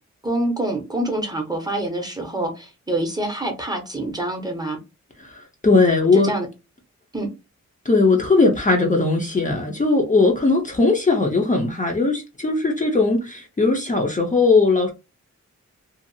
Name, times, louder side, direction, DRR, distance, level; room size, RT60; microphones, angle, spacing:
voice 1, 0.2-4.8 6.1-6.5 7.1-7.3, right 1 dB, 15° right, 0.7 m, -26 dB
voice 2, 5.2-6.3 7.8-14.9, left 3 dB, 25° left, 0.6 m, -19 dB
2.7 x 2.3 x 2.6 m
wide cardioid pair, 135°, 29 cm